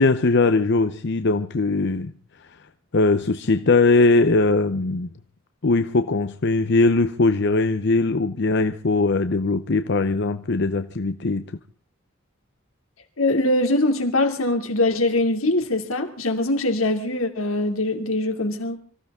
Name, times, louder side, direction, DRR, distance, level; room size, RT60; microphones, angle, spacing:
voice 1, 0.0-2.1 2.9-5.1 5.6-11.4, left 3 dB, 55° left, 0.7 m, -20 dB
voice 2, 13.2-18.8, left 2 dB, 90° left, 2.7 m, -22 dB
25.5 x 15.0 x 3.7 m
head